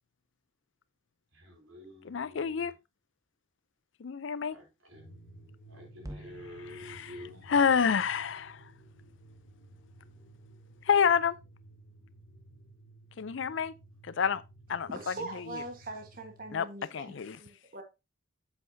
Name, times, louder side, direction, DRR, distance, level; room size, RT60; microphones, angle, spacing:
voice 1, 1.3-2.7 4.5-7.5, left 1 dB, 80° right, 3.6 m, -50 dB
voice 2, 2.0-2.7 4.0-4.6 6.7-7.2 7.5-8.6 10.8-11.4 13.2-13.7 14.1-14.4 14.7-15.1 15.5-15.6 16.5-16.7 16.9-17.4, left 6 dB, 60° left, 0.5 m, -28 dB
sound 1, 4.9-16.6, right 1 dB, 45° left, 1.2 m, -55 dB
sound 2, 6.0-10.4, right 1 dB, 15° right, 0.7 m, -52 dB
voice 3, 14.9-17.8, right 2 dB, 45° right, 1.4 m, -42 dB
8.0 x 7.8 x 2.7 m
head